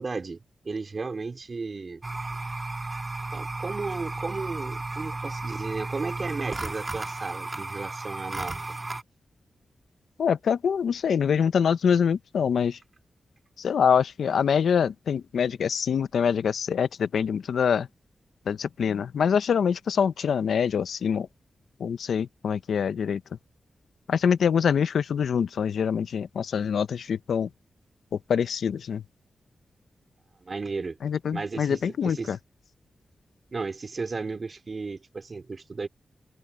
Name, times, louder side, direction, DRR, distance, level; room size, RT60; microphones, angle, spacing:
voice 1, 0.0-2.0 3.3-8.5 30.4-31.0 31.3-32.3 33.5-35.9, right 4 dB, 50° right, 3.3 m, -34 dB
sound 1, 2.0-9.0, right 2 dB, 30° right, 1.9 m, -34 dB
voice 2, 10.2-12.8 13.6-17.9 18.5-21.3 21.8-23.2 24.1-27.5 28.3-29.0 31.0-32.4, left 7 dB, 85° left, 0.8 m, -25 dB
open air
cardioid pair, 55°, 0 cm